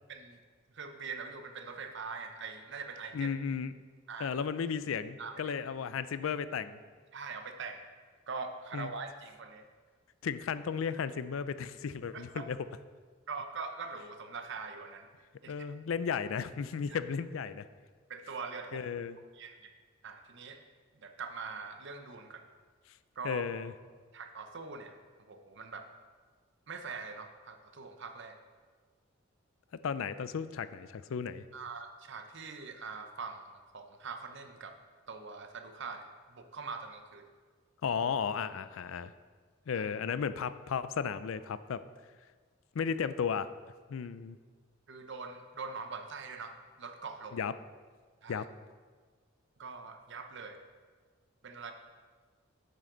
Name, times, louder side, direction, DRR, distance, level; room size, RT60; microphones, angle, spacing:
voice 1, 0.7-3.3 4.1-4.3 5.2-5.5 7.1-7.8 8.3-9.7 12.1-12.5 13.3-15.1 15.4-15.5 16.9-17.0 18.1-18.9 19.3-19.7 20.0-20.6 20.9-22.5 23.2-23.4 24.1-25.0 25.3-25.9 26.7-28.4 31.5-33.4 33.7-34.7 35.1-37.3 39.7-39.8 44.9-47.4 48.2-48.5 49.6-50.6 51.4-51.7, right 4 dB, 60° right, 6 dB, 0.8 m, -43 dB
voice 2, 3.1-3.7 4.2-6.8 8.7-8.9 10.2-12.6 15.5-17.6 18.7-19.2 23.2-23.7 29.8-31.4 37.8-39.1 39.7-41.8 42.7-43.5 43.9-44.4 47.3-47.5 48.3-48.5, left 6 dB, 80° left, 14 dB, 0.4 m, -34 dB
9.1 x 7.8 x 3.9 m, 1.5 s
head